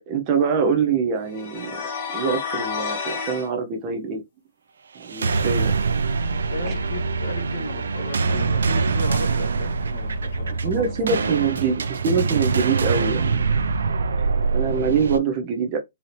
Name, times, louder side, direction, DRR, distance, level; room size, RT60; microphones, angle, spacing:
voice 1, 0.1-1.8 2.1-4.2 4.9-5.8 6.7-6.8 10.6-13.4 14.2-14.3 14.5-15.8, right 5 dB, 20° right, 0.6 m, -24 dB
sound 1, 1.3-3.5, left 6 dB, 20° left, 1.1 m, -30 dB
sound 2, 5.0-15.2, right 4 dB, 90° right, 0.6 m, -24 dB
voice 2, 6.1-11.6 13.1-13.5 14.3-14.4, left 2 dB, 55° left, 1.8 m, -36 dB
4.1 x 2.7 x 3.2 m
hypercardioid pair, 175°, 0 cm